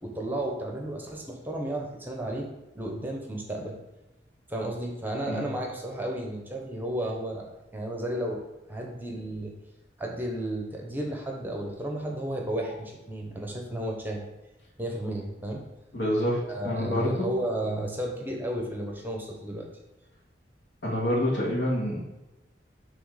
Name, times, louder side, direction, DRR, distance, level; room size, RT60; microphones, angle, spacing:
voice 1, 0.0-2.5 2.7-3.8 4.5-7.5 7.7-8.4 8.7-9.5 10.0-14.3 14.8-15.6 16.5-19.7, right 1 dB, 10° right, 0 dB, 0.8 m, -33 dB
voice 2, 15.9-17.3 20.8-22.0, left 1 dB, 75° left, -4 dB, 2.0 m, -27 dB
6.1 x 3.4 x 4.8 m, 1.0 s
head